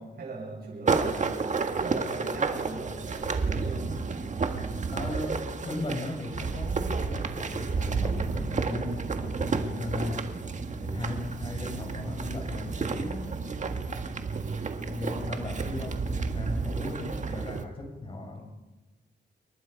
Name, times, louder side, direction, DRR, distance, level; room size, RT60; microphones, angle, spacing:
voice 1, 0.0-3.9, right 3 dB, 55° right, -3 dB, 7.6 m, -38 dB
sound 1, 0.9-17.6, right 4 dB, 40° right, 1.7 m, -31 dB
voice 2, 4.9-10.3 10.8-13.5 14.8-18.4, left 2 dB, 30° left, 3 dB, 5.8 m, -37 dB
29.0 x 24.5 x 5.3 m, 1.2 s
wide cardioid pair, 150°, 18 cm